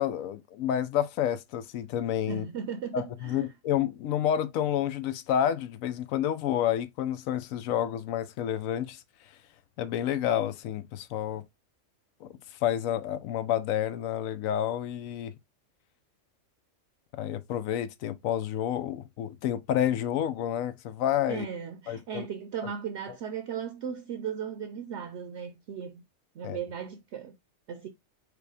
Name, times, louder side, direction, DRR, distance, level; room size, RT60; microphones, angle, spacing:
voice 1, 0.0-2.4 2.9-9.0 9.8-11.4 12.2-12.3 12.6-15.3 17.2-21.5 21.9-22.3 22.6-22.7 26.4-26.6, left 10 dB, 90° left, 1.0 m, -29 dB
voice 2, 2.3-3.5 21.3-26.0 26.4-27.4 27.7-27.9, right 7 dB, 65° right, 0.8 m, -36 dB
5.0 x 2.2 x 4.7 m
omnidirectional pair, 1.4 m